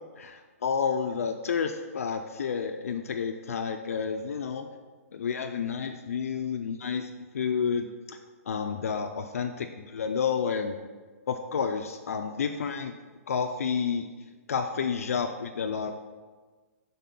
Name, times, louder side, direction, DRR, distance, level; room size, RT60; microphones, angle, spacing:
voice 1, 0.2-4.7 5.1-7.1 7.3-8.2 8.5-10.8 11.3-12.9 13.3-14.1 14.5-15.9, left 6 dB, 70° left, 5 dB, 0.4 m, -30 dB
5.3 x 4.1 x 5.8 m, 1.4 s
hypercardioid pair, 180°, 8 cm